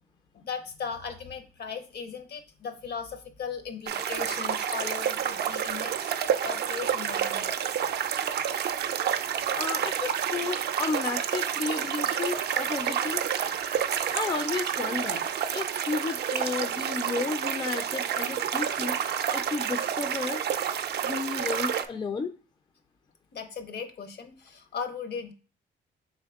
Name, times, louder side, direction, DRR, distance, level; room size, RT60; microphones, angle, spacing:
voice 1, 0.3-7.7 23.3-25.3, left 6 dB, 55° left, 8 dB, 0.7 m, -38 dB
sound 1, 3.9-21.9, right 8 dB, 55° right, 0.4 m, -29 dB
voice 2, 9.5-15.2 15.5-19.0 19.3-20.4 21.0-22.3, left 4 dB, 25° left, 8 dB, 0.4 m, -33 dB
3.6 x 3.1 x 3.5 m, 0.35 s
cardioid pair, 90°, 20 cm